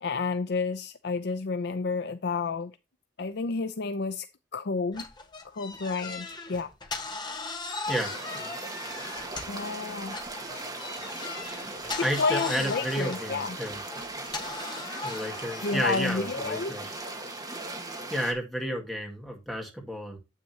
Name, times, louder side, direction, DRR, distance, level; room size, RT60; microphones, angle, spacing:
voice 1, 0.0-2.7 3.2-4.3 4.5-5.1 5.5-6.7 9.5-10.2 11.9-13.6 15.6-16.7, left 4 dB, 55° left, 0.5 m, -30 dB
sound 1, 4.9-9.7 10.1-16.2, left 3 dB, 20° left, 1.3 m, -38 dB
sound 2, 7.8-18.3, right 2 dB, 20° right, 1.7 m, -38 dB
voice 2, 12.0-13.8 15.0-16.9 18.1-20.2, equal, ahead, 2.0 m, -31 dB
9.2 x 8.3 x 2.8 m
head